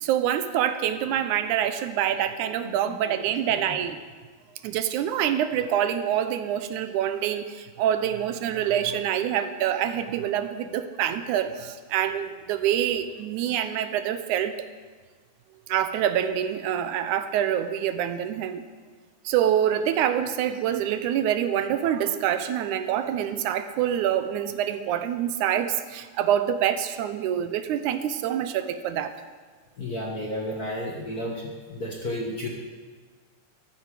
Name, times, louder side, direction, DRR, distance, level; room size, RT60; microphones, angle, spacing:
voice 1, 0.0-4.0 4.6-14.7 15.7-18.6 19.3-29.2, right 10 dB, 80° right, 10 dB, 2.1 m, -26 dB
voice 2, 2.6-3.0 29.8-32.5, left 1 dB, 40° left, -2 dB, 1.4 m, -32 dB
14.0 x 13.5 x 4.9 m, 1.5 s
omnidirectional pair, 3.6 m